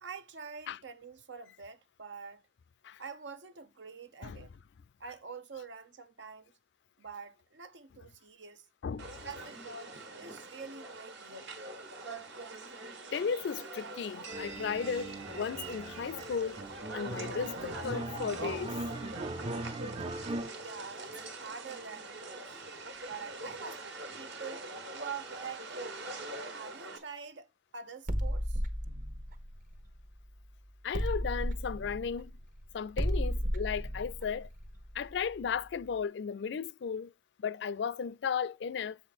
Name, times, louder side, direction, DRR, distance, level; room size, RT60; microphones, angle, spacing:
voice 1, 0.0-2.4 3.0-4.5 5.0-6.5 7.0-8.7 9.2-11.8 20.5-22.6 23.0-24.6 24.9-25.9 26.5-28.6, right 6 dB, 90° right, 0.9 m, -46 dB
sound 1, 9.0-27.0, right 2 dB, 75° right, 1.6 m, -43 dB
voice 2, 13.1-16.6 16.9-18.8 30.8-32.3 32.7-34.5 34.9-37.1 37.4-39.0, left 6 dB, 70° left, 0.4 m, -35 dB
sound 2, 14.3-20.5, right 2 dB, 30° right, 0.5 m, -40 dB
sound 3, 28.1-30.4 30.9-35.6, equal, 50° right, 1.0 m, -34 dB
7.5 x 5.0 x 4.1 m
head